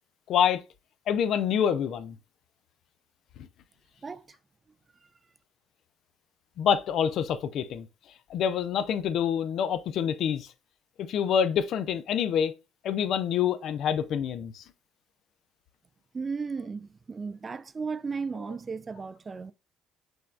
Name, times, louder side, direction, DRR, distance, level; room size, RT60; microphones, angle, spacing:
voice 1, 0.3-0.6 1.1-2.2 6.6-7.9 8.3-10.5 11.0-12.5 12.8-14.6, left 8 dB, 50° left, 0.4 m, -26 dB
voice 2, 4.0-4.4 16.1-19.5, right 5 dB, 30° right, 0.3 m, -35 dB
6.1 x 3.2 x 2.4 m
figure-of-eight pair, 50°, 0 cm